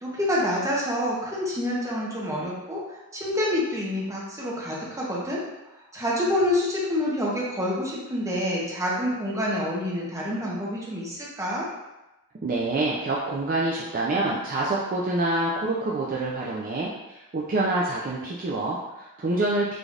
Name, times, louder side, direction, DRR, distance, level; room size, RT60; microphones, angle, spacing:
voice 1, 0.0-5.4 5.9-11.7, left 1 dB, 15° right, -6 dB, 0.8 m, -27 dB
voice 2, 12.4-19.8, right 2 dB, 40° right, -5 dB, 0.4 m, -26 dB
3.8 x 3.2 x 2.4 m, 1.0 s
head